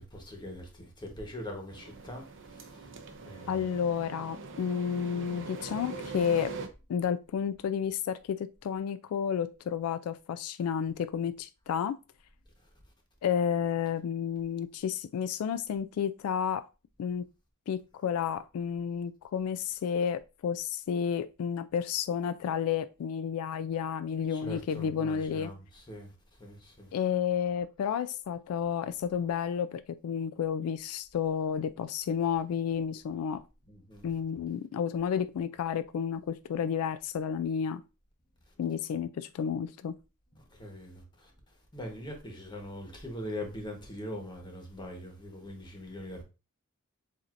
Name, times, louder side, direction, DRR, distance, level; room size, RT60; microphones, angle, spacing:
voice 1, 0.0-2.2 2.6-2.8 3.1-3.6 24.3-26.1 26.4-26.9 33.7-34.0 40.4-41.3 41.7-46.2, left 1 dB, 20° left, 1.1 m, -42 dB
sound 1, 1.7-6.7, right 4 dB, 60° right, 0.7 m, -42 dB
voice 2, 3.5-6.5 6.9-12.0 13.2-16.7 17.0-17.2 17.7-25.5 26.9-33.4 34.0-37.8 38.6-39.9, left 7 dB, 80° left, 0.3 m, -31 dB
7.3 x 2.7 x 2.5 m
head